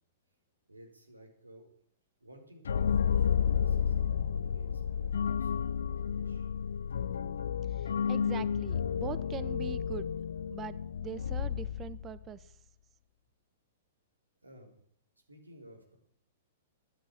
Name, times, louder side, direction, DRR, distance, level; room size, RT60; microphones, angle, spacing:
voice 1, 0.7-1.7 2.2-6.5 14.4-14.8 15.3-16.0, right 1 dB, 90° right, 3 dB, 4.4 m, -55 dB
sound 1, 2.6-12.3, left 7 dB, 70° left, 0.5 m, -31 dB
voice 2, 7.7-10.1 10.5-12.5, right 9 dB, 25° right, 16 dB, 1.0 m, -43 dB
13.0 x 11.5 x 8.9 m, 0.66 s
figure-of-eight pair, 105°, 0 cm